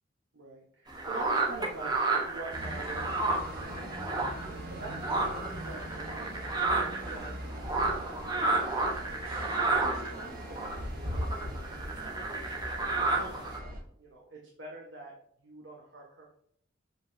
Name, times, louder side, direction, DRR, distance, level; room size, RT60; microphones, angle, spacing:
voice 1, 0.3-3.4 4.4-6.6 6.9-8.9 9.5-15.1 15.4-16.3, right 2 dB, 85° right, -2 dB, 1.5 m, -46 dB
sound 1, 0.9-4.5 4.8-13.6, right 3 dB, 20° right, 1.1 m, -31 dB
sound 2, 2.5-13.8, equal, 50° right, 1.5 m, -40 dB
6.8 x 5.4 x 2.8 m, 0.67 s
head